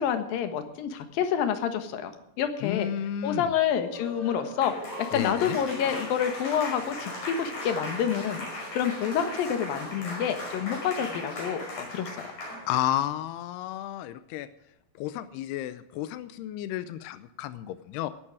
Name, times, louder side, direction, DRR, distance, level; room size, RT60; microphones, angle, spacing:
voice 1, 0.0-2.9 3.2-4.7 5.1-8.5 8.7-12.3, left 8 dB, 70° left, 8 dB, 3.0 m, -28 dB
voice 2, 2.6-3.5 5.1-5.6 12.7-14.5 15.0-18.1, left 11 dB, 90° left, 13 dB, 2.7 m, -32 dB
Applause, 3.8-13.0, left 1 dB, 50° left, 7.1 m, -38 dB
17.5 x 11.0 x 4.9 m, 0.84 s
omnidirectional pair, 4.6 m